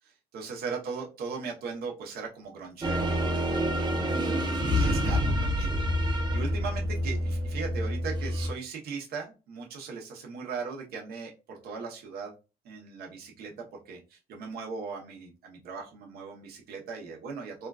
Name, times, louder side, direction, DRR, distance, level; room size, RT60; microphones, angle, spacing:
voice 1, 0.0-5.8 6.0-12.3 12.6-13.5 13.8-17.7, right 5 dB, 70° right, 0 dB, 1.0 m, -39 dB
sound 1, 2.8-8.5, equal, 25° right, 0.7 m, -27 dB
3.6 x 2.4 x 2.3 m, 0.30 s
cardioid pair, 110°, 17 cm